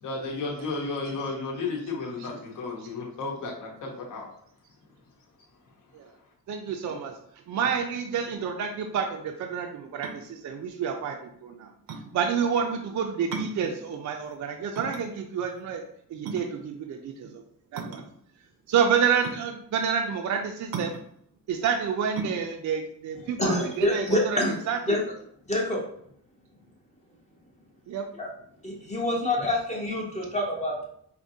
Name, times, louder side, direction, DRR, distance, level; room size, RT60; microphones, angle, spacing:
voice 1, 0.0-4.3, left 3 dB, 65° left, -2 dB, 0.9 m, -33 dB
voice 2, 6.5-11.7 12.1-15.8 16.1-17.4 17.7-18.1 18.7-21.0 21.5-25.0 27.9-28.1, right 7 dB, 60° right, 3 dB, 0.5 m, -29 dB
sound 1, 9.8-24.2, right 4 dB, 90° right, 0.7 m, -39 dB
voice 3, 23.4-24.6 24.9-25.0 25.5-25.8 28.2-28.3 28.6-30.9, left 1 dB, 20° left, -2 dB, 0.6 m, -26 dB
5.0 x 2.7 x 2.7 m, 0.67 s
wide cardioid pair, 165°, 34 cm